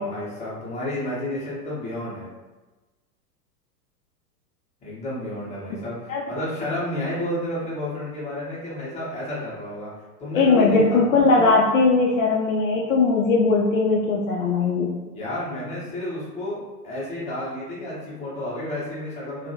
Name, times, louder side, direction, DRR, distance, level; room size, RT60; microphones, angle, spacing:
voice 1, 0.0-2.3 4.8-9.9 10.2-11.0 15.1-19.5, left 1 dB, 15° left, -8 dB, 0.8 m, -31 dB
voice 2, 10.3-14.9, left 3 dB, 55° left, -3 dB, 0.5 m, -19 dB
2.6 x 2.3 x 2.7 m, 1.2 s
figure-of-eight pair, 100°, 49 cm